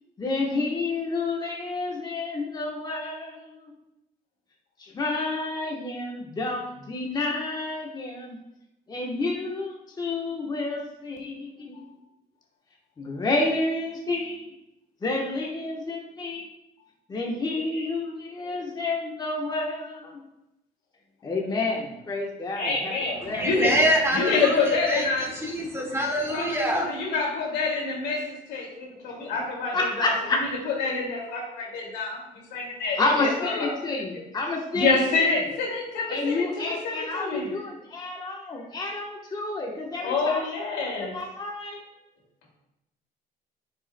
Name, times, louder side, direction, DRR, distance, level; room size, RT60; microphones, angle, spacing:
voice 1, 0.2-3.7 4.8-8.4 8.9-11.9 13.0-14.5 15.0-16.5 17.1-20.2 21.2-22.9 23.2-23.4 29.7-30.4 33.0-34.9 35.2-35.3 36.1-40.4 41.1-41.8, left 2 dB, 25° left, 0 dB, 1.1 m, -29 dB
voice 2, 17.6-17.9 22.5-25.3 26.3-33.7 34.7-37.5 39.9-41.1, left 4 dB, 85° left, -2 dB, 2.3 m, -27 dB
voice 3, 23.3-26.9, equal, 15° right, 0 dB, 1.4 m, -25 dB
9.3 x 5.4 x 2.2 m, 0.91 s
cardioid pair, 110°, 17 cm